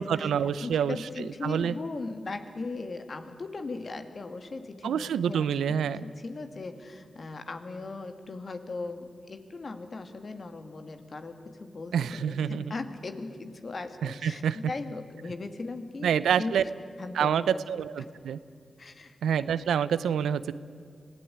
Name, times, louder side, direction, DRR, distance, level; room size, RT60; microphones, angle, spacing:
voice 1, 0.0-1.0 1.4-1.7 4.8-6.1 11.9-12.7 14.0-14.6 16.0-16.6 17.1-18.4 19.2-20.5, right 8 dB, 90° right, 16 dB, 0.6 m, -27 dB
voice 2, 0.6-5.4 6.0-16.1 16.4-16.5 17.0-17.6 18.0-18.1 18.8-19.2, left 3 dB, 55° left, 8 dB, 2.1 m, -38 dB
24.5 x 16.0 x 9.2 m, 2.3 s
supercardioid pair, 40°, 0 cm